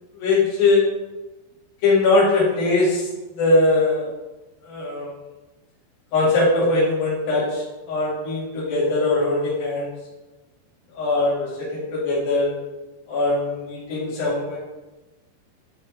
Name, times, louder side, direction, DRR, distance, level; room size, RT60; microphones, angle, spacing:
voice 1, 0.2-0.9 1.8-3.1 3.4-4.1 4.6-5.1 6.1-9.9 10.9-12.5 13.1-14.6, left 2 dB, 65° left, -7 dB, 4.2 m, -21 dB
10.5 x 4.5 x 4.7 m, 1.1 s
omnidirectional pair, 4.5 m